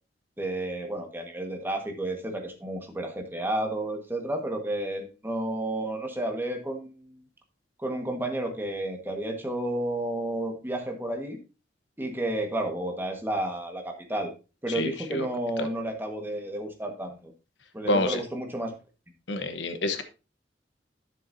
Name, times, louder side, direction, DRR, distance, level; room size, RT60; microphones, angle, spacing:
voice 1, 0.4-7.2 7.8-11.4 12.0-14.3 14.6-17.2 17.7-18.8, right 1 dB, 10° right, 3 dB, 1.5 m, -31 dB
voice 2, 14.7-15.3 15.6-15.7 17.8-18.2 19.3-20.0, left 2 dB, 80° left, 9 dB, 1.0 m, -28 dB
10.5 x 7.1 x 2.7 m, 0.30 s
head